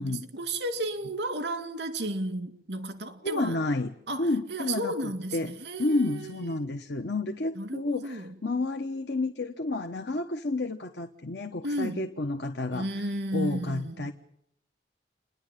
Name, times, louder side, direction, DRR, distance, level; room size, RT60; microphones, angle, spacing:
voice 1, 0.0-3.6 4.1-6.6 7.6-8.3 11.6-12.1 12.7-14.1, right 1 dB, 80° right, 2.4 m, -33 dB
voice 2, 3.2-5.5 5.8-12.9 13.3-14.1, left 2 dB, 80° left, 1.2 m, -30 dB
29.0 x 11.0 x 9.2 m
head